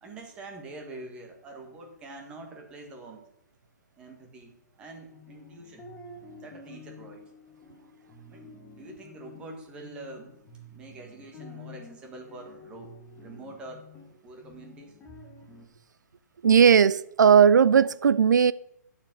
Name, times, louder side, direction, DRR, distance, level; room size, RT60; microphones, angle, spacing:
voice 1, 0.0-3.3 4.0-5.9 6.4-7.3 8.3-10.3 10.7-12.9 13.2-13.8 14.2-14.9, right 2 dB, 10° right, 1.6 m, -45 dB
sound 1, 5.1-15.7, left 2 dB, 10° left, 1.3 m, -49 dB
voice 2, 16.4-18.5, right 7 dB, 80° right, 0.5 m, -17 dB
12.0 x 7.4 x 9.0 m
hypercardioid pair, 175°, 10 cm